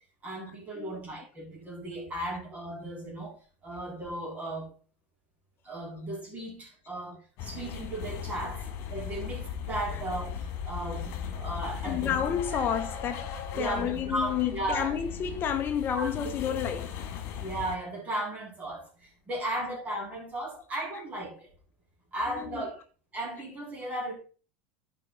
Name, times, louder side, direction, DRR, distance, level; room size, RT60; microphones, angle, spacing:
voice 1, 0.2-3.4 3.6-4.7 5.7-10.3 10.7-12.1 13.5-14.9 15.9-16.3 17.4-18.9 19.3-21.5 22.1-22.8 23.1-24.1, right 1 dB, 25° right, 3.8 m, -35 dB
sound 1, 7.4-17.8, left 7 dB, 50° left, 2.2 m, -37 dB
voice 2, 11.8-17.0 20.9-21.0 22.3-22.7, left 9 dB, 35° left, 0.8 m, -31 dB
11.0 x 5.1 x 3.8 m
supercardioid pair, 130°, 6 cm